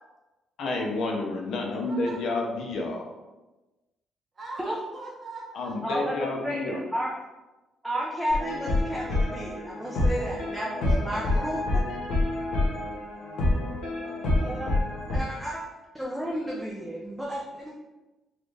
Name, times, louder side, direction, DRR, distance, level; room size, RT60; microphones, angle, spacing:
voice 1, 0.6-3.1 5.5-6.8, left 2 dB, 60° left, 1 dB, 0.6 m, -30 dB
voice 2, 1.8-2.2 4.3-6.0 10.8-11.6 14.0-14.9, right 3 dB, 25° right, -5 dB, 1.0 m, -42 dB
voice 3, 5.8-7.1 7.8-11.6 14.4-14.7 15.1-15.6 15.9-17.7, equal, 5° right, -4 dB, 0.4 m, -32 dB
sound 1, 8.3-15.2, left 2 dB, 85° left, 1.3 m, -27 dB
4.0 x 2.4 x 3.2 m, 1.1 s
cardioid pair, 175°, 0 cm